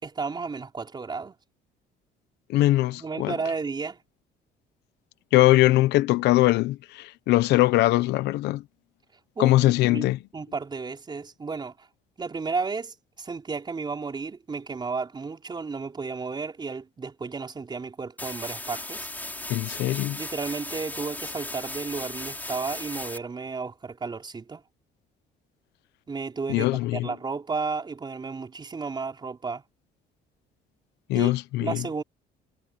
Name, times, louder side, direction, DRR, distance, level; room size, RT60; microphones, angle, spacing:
voice 1, 0.0-1.4 3.0-4.0 9.4-11.9 12.2-19.1 20.2-24.6 26.1-29.6 31.1-31.3 31.6-32.0, right 4 dB, 25° right, 4.6 m, -33 dB
voice 2, 2.5-3.3 5.3-8.6 9.4-10.2 19.5-20.2 26.5-27.1 31.1-31.8, left 17 dB, 85° left, 1.0 m, -21 dB
sound 1, 18.2-23.2, left 2 dB, 10° left, 3.0 m, -36 dB
cardioid pair, 110°, 17 cm